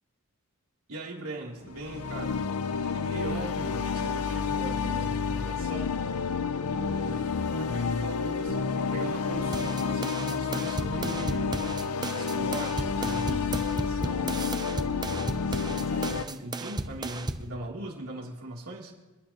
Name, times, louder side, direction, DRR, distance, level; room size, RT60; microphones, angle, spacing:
voice 1, 0.9-2.4 2.9-6.0 6.7-11.6 12.1-14.4 15.5-18.9, right 2 dB, 80° right, -2 dB, 3.1 m, -40 dB
sound 1, 1.7-16.2, left 5 dB, 90° left, 0.6 m, -30 dB
sound 2, 9.5-17.5, right 2 dB, 20° right, 0.6 m, -35 dB
27.5 x 11.5 x 3.0 m, 1.1 s
head